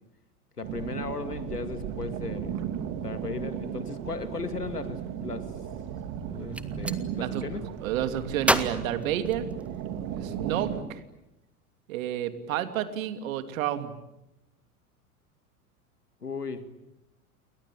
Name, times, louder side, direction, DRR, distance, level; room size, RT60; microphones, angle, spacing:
voice 1, 0.6-2.5 2.9-5.5 6.2-7.6 10.2-10.5 16.2-16.6, left 4 dB, 90° left, 10 dB, 2.5 m, -36 dB
sound 1, 0.6-10.8, right 9 dB, 45° right, 3.4 m, -35 dB
Gunshot gunfire, 6.3-7.0 8.4-9.9, right 1 dB, 5° right, 1.8 m, -29 dB
voice 2, 7.8-9.5 10.1-11.0 11.9-13.9, right 11 dB, 60° right, 9 dB, 3.0 m, -30 dB
29.5 x 23.0 x 8.7 m, 0.92 s
figure-of-eight pair, 85°, 45 cm